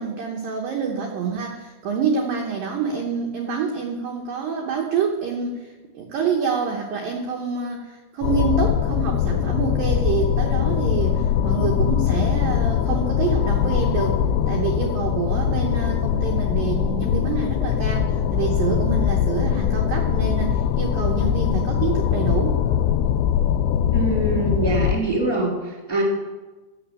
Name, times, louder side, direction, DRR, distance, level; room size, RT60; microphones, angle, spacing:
voice 1, 0.0-14.2 14.5-22.6, right 6 dB, 85° right, 1 dB, 2.0 m, -27 dB
sound 1, 8.2-25.0, left 9 dB, 90° left, 2.4 m, -22 dB
voice 2, 23.9-25.5 25.9-26.0, right 2 dB, 5° left, -2 dB, 1.3 m, -23 dB
10.5 x 7.0 x 8.3 m, 1.2 s
omnidirectional pair, 5.6 m